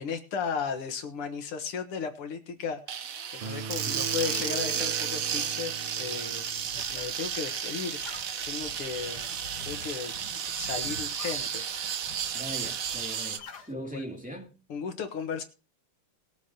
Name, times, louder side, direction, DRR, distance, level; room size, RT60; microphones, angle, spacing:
voice 1, 0.0-6.4 6.9-8.0 8.5-9.3 9.7-10.1 10.5-11.6 13.9-14.0 14.7-15.4, left 6 dB, 80° left, 2.3 m, -35 dB
sound 1, 2.9-13.4, right 8 dB, 55° right, 1.0 m, -33 dB
sound 2, 3.4-7.0, right 5 dB, 85° right, 2.3 m, -40 dB
sound 3, 6.2-13.7, left 3 dB, 50° left, 1.8 m, -48 dB
voice 2, 12.3-14.5, equal, 5° right, 2.4 m, -40 dB
20.5 x 8.3 x 2.9 m
omnidirectional pair, 2.4 m